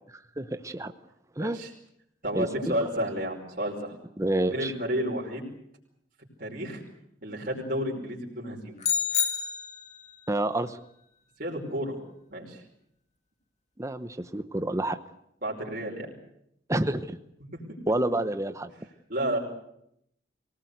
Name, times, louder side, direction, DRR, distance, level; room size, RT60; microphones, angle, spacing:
voice 1, 0.4-0.9 1.4-1.6 2.4-2.9 4.2-4.7 10.3-10.8 13.8-15.0 16.7-17.2 17.9-18.7, right 1 dB, 15° right, 10 dB, 0.9 m, -28 dB
voice 2, 1.4-1.7 2.2-3.9 4.5-5.5 6.4-6.8 7.2-8.8 11.4-12.0 12.3-12.6 15.4-16.2 17.5-17.6 19.1-19.4, equal, 45° right, -1 dB, 5.1 m, -31 dB
sound 1, 8.8-10.1, left 7 dB, 40° left, 2.8 m, -28 dB
24.0 x 18.5 x 8.1 m, 0.75 s
head